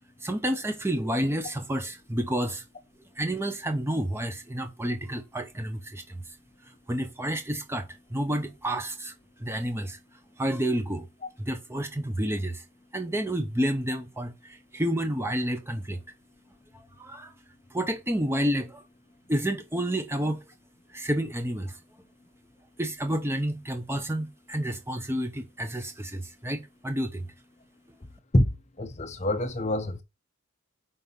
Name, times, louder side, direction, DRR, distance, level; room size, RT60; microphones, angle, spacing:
voice 1, 0.2-2.6 3.2-6.4 6.9-9.1 9.4-10.0 10.4-11.1 11.4-12.6 12.9-16.0 16.7-17.3 17.7-18.8 19.3-20.5 20.9-21.8 22.8-27.3, right 1 dB, 10° right, 0.7 m, -30 dB
voice 2, 28.3-30.0, left 1 dB, 30° left, 0.8 m, -26 dB
5.8 x 4.0 x 5.4 m
head